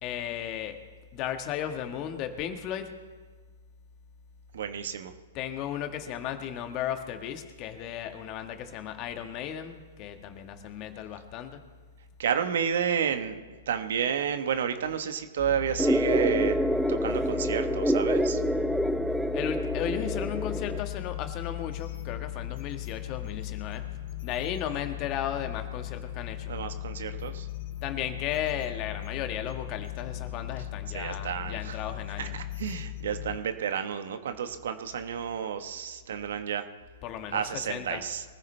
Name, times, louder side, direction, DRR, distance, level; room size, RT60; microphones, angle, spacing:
voice 1, 0.0-0.9 1.1-3.0 5.3-11.6 17.1-17.3 19.3-26.5 27.8-32.4 37.0-38.1, left 10 dB, 35° left, 7 dB, 1.5 m, -35 dB
voice 2, 4.5-5.1 12.2-13.4 13.7-16.5 16.9-18.4 26.5-27.5 30.9-31.8 32.2-36.7 37.3-38.2, right 8 dB, 70° right, 8 dB, 1.3 m, -31 dB
sound 1, 15.4-33.4, left 14 dB, 55° left, 3.0 m, -38 dB
sound 2, 15.8-20.8, equal, ahead, 0.5 m, -27 dB
24.0 x 14.5 x 3.4 m, 1.4 s
hypercardioid pair, 125°, 0 cm